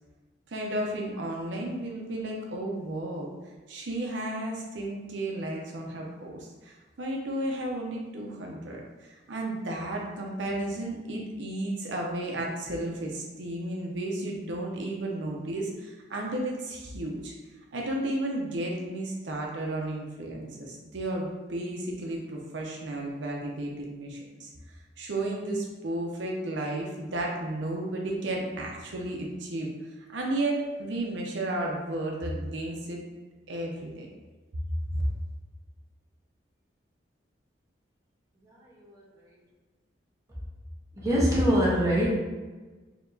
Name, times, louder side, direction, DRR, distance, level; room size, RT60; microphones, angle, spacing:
voice 1, 0.5-3.3 3.7-17.3 17.7-24.5 25.0-29.7 30.1-33.0 33.5-34.1 34.9-35.0, right 1 dB, 85° right, -1 dB, 0.6 m, -33 dB
voice 2, 38.4-39.3 40.9-42.1, equal, 20° right, -7 dB, 1.0 m, -25 dB
4.4 x 2.9 x 2.6 m, 1.3 s
head